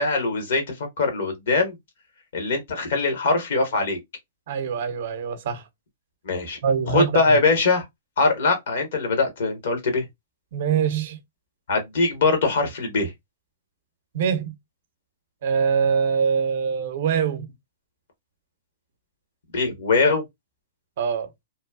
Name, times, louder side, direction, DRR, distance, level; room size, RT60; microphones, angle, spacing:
voice 1, 0.0-1.7 2.3-4.0 6.2-6.6 6.9-7.8 8.2-10.0 11.7-13.1 19.5-20.2, left 3 dB, 65° left, 1.2 m, -22 dB
voice 2, 4.5-5.6 6.6-7.4 10.5-11.2 14.1-14.5 15.4-17.5 21.0-21.3, right 6 dB, 55° right, 0.6 m, -23 dB
2.8 x 2.3 x 2.3 m
hypercardioid pair, 115°, 0 cm